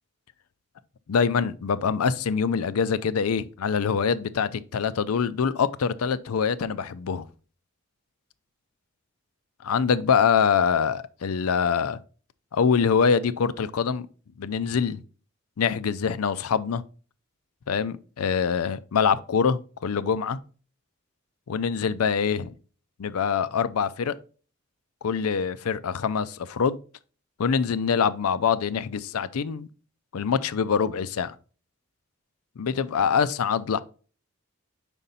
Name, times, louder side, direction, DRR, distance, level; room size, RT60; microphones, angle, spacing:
voice 1, 1.1-7.3 9.6-12.0 12.5-14.1 14.4-15.0 15.6-16.8 17.7-20.4 21.5-22.5 23.0-24.1 25.0-26.8 27.4-29.7 30.1-31.3 32.6-33.8, left 6 dB, 90° left, 0.5 m, -24 dB
5.3 x 5.0 x 4.1 m
head